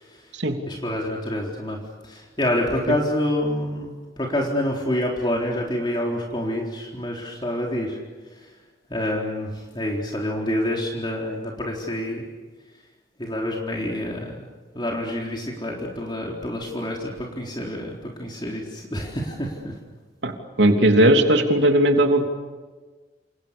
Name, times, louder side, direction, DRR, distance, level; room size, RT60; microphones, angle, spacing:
voice 1, 0.0-0.3 0.7-8.0 8.2-8.6 8.9-12.3 13.2-14.5 14.7-19.7, left 1 dB, 25° left, -2 dB, 3.9 m, -27 dB
voice 2, 20.2-22.2, right 1 dB, 80° right, 4 dB, 3.1 m, -18 dB
29.0 x 29.0 x 7.0 m, 1.3 s
head